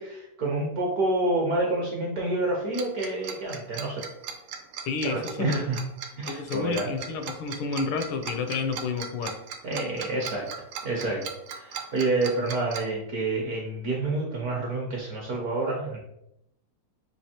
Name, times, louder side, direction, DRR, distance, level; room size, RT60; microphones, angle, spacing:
voice 1, 0.0-4.1 5.0-5.8 6.2-6.9 9.6-10.5 10.8-16.0, right 2 dB, 60° right, -1 dB, 1.0 m, -28 dB
Tick-tock, 2.7-12.8, right 7 dB, 80° right, 1.5 m, -37 dB
voice 2, 4.8-5.7 6.3-9.4, left 4 dB, 80° left, 6 dB, 1.4 m, -30 dB
6.3 x 2.8 x 2.8 m, 0.78 s
omnidirectional pair, 2.4 m